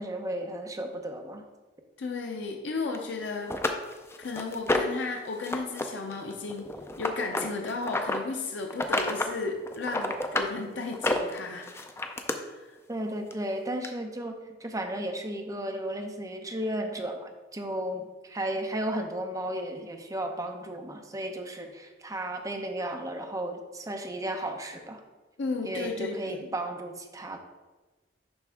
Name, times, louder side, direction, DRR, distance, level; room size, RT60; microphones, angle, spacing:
voice 1, 0.0-1.4 12.9-25.0 25.6-27.4, right 1 dB, 20° right, 4 dB, 0.7 m, -34 dB
voice 2, 2.0-3.5 4.2-6.7 7.0-11.7 12.5-12.7 25.4-26.5, left 3 dB, 75° left, 1 dB, 0.7 m, -34 dB
sound 1, 2.9-3.0 3.5-5.0 5.4-5.8 6.1-8.2 8.7-9.3 9.7-10.5 10.9-12.3 13.3-13.4 13.8-13.9, left 2 dB, 15° left, 0.4 m, -29 dB
10.5 x 3.5 x 3.5 m, 1.2 s
head